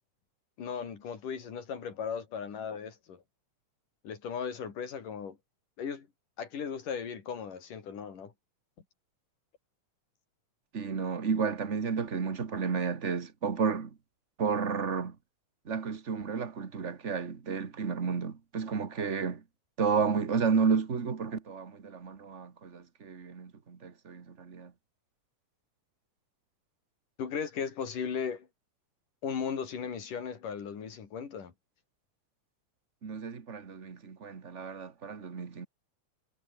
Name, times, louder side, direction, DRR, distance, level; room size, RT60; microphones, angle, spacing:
voice 1, 0.6-3.2 4.0-5.4 5.8-6.1 6.4-8.3 27.2-28.5 29.2-31.5, left 7 dB, 85° left, 5.0 m, -37 dB
voice 2, 10.7-13.9 14.4-15.1 15.6-19.4 19.8-24.7 33.0-35.7, right 5 dB, 35° right, 1.3 m, -32 dB
omnidirectional pair, 3.6 m